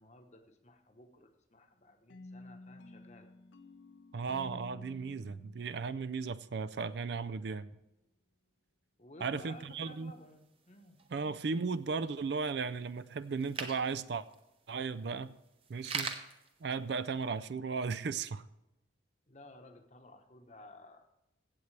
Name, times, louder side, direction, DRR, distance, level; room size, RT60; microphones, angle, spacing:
voice 1, 0.0-3.3 9.0-11.0 19.3-21.1, left 1 dB, 35° left, 6 dB, 1.0 m, -55 dB
sound 1, 2.1-7.0, left 2 dB, 75° left, 0.7 m, -53 dB
voice 2, 4.1-7.7 9.2-10.1 11.1-14.3 14.7-15.4 15.7-16.1 16.6-18.5, right 5 dB, 55° right, 16 dB, 0.4 m, -36 dB
sound 2, 9.3-17.5, right 4 dB, 30° right, 0.9 m, -46 dB
15.5 x 8.1 x 3.3 m, 0.93 s
head